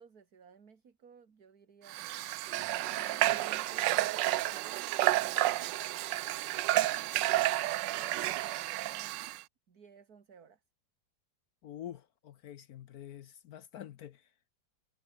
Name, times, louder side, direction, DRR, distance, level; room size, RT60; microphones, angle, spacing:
voice 1, 0.0-2.4 2.9-7.2 7.5-9.2 9.7-10.6, right 6 dB, 55° right, 2.5 m, -58 dB
Water / Water tap faucet, 1.9-9.4, right 16 dB, 80° right, 1.3 m, -31 dB
voice 2, 11.6-14.2, left 11 dB, 65° left, 1.1 m, -47 dB
omnidirectional pair, 2.0 m